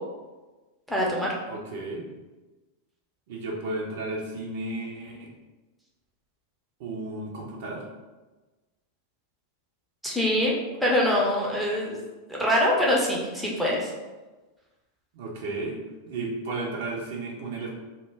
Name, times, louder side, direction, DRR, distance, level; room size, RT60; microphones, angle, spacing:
voice 1, 0.9-1.3 10.0-12.0 12.3-13.9, left 1 dB, ahead, -4 dB, 0.6 m, -24 dB
voice 2, 1.5-2.1 3.3-5.3 6.8-7.9 15.1-15.8 16.1-17.7, right 2 dB, 50° right, -2 dB, 0.5 m, -33 dB
2.1 x 2.1 x 3.3 m, 1.2 s
figure-of-eight pair, 90°, 0 cm